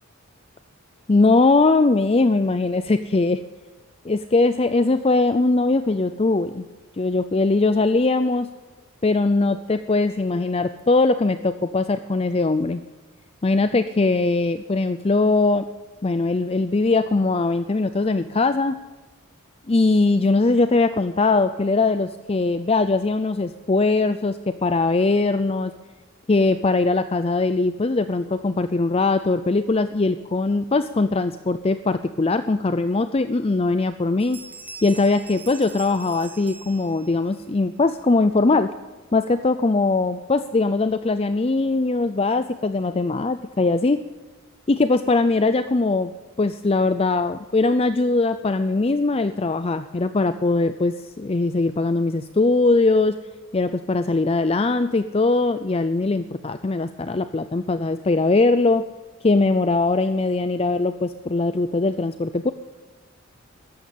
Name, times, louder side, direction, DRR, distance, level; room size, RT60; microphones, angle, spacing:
voice 1, 1.1-3.4 4.0-6.6 7.0-8.5 9.0-12.8 13.4-15.6 16.0-18.8 19.7-25.7 26.3-34.4 34.8-38.7 39.1-44.0 44.7-46.1 46.4-53.2 53.5-58.9 59.2-62.5, left 3 dB, 25° left, 11 dB, 0.4 m, -21 dB
sound 1, 33.2-33.3 33.7-33.9 34.2-37.3, right 4 dB, 10° right, 0.8 m, -42 dB
14.0 x 11.5 x 8.6 m, 1.3 s
head